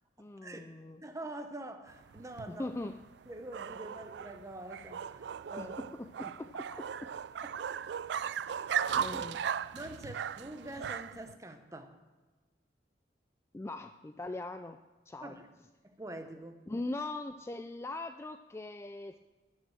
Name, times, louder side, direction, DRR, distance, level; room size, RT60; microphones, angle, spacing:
voice 1, 0.2-1.0 2.5-3.0 5.6-7.1 8.2-8.7 9.0-9.4 13.5-14.8 15.1-15.3 16.7-19.2, left 2 dB, 15° left, 9 dB, 0.3 m, -41 dB
voice 2, 1.0-2.7 3.3-5.8 6.2-6.3 9.7-11.9 15.2-15.5 15.8-16.6, right 1 dB, 15° right, 7 dB, 1.0 m, -45 dB
sound 1, 1.9-11.3, right 8 dB, 65° right, 0.3 m, -37 dB
12.5 x 7.2 x 7.7 m, 1.3 s
head